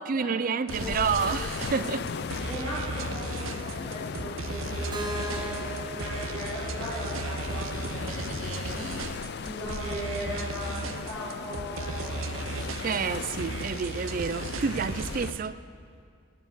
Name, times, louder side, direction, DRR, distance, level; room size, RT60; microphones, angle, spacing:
voice 1, 0.0-2.1 12.8-15.6, right 5 dB, 40° right, 0.4 m, -29 dB
sound 1, 0.7-15.3, left 5 dB, 50° left, 0.4 m, -37 dB
sound 2, 0.7-15.5, right 4 dB, 75° right, 0.6 m, -36 dB
voice 2, 2.5-9.2 9.5-12.4, equal, 10° left, 3.3 m, -38 dB
Keyboard (musical), 4.9-8.8, right 2 dB, 20° right, 0.8 m, -40 dB
11.5 x 8.5 x 9.3 m
head